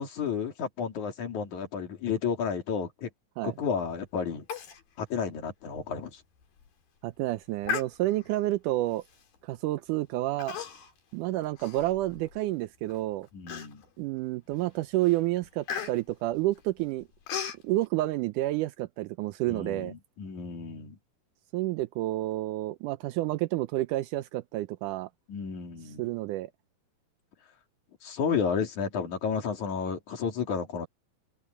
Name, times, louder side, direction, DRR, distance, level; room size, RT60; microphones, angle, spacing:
voice 1, 0.0-3.1 3.4-4.4 5.0-6.2 13.3-13.8 19.5-21.0 25.3-26.1 28.0-30.9, left 6 dB, 55° left, 4.3 m, -32 dB
Human voice, 4.5-4.8 5.1-5.2 5.7-5.9 6.4-6.7 7.6-8.4 9.1-9.4 10.4-11.0 11.4-12.4 12.9-13.0 13.5-14.0 14.5-14.7 15.0-17.6, left 7 dB, 75° left, 4.9 m, -36 dB
voice 2, 7.0-9.0 9.4-10.6 11.1-13.3 14.0-17.1 17.6-19.9 21.5-25.1 26.0-26.5, right 17 dB, 85° right, 1.8 m, -29 dB
open air
omnidirectional pair, 4.3 m